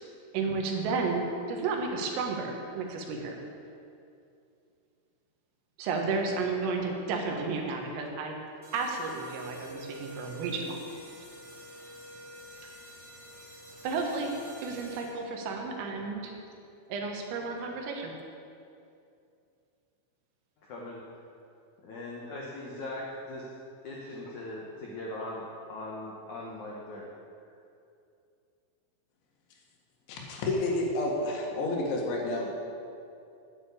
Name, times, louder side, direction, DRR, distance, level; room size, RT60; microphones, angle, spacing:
voice 1, 0.3-3.4 5.8-8.4 8.7-10.9 13.8-14.3 14.6-16.3 16.9-18.1, right 4 dB, 90° right, 2 dB, 4.1 m, -32 dB
sound 1, 8.6-15.4, left 1 dB, 10° left, 1.6 m, -47 dB
voice 2, 20.6-21.0 21.8-23.5 23.8-27.1, left 1 dB, 85° left, -3 dB, 1.7 m, -40 dB
voice 3, 30.1-32.5, left 2 dB, 70° left, -1 dB, 4.0 m, -30 dB
9.9 x 9.5 x 8.4 m, 2.5 s
omnidirectional pair, 5.7 m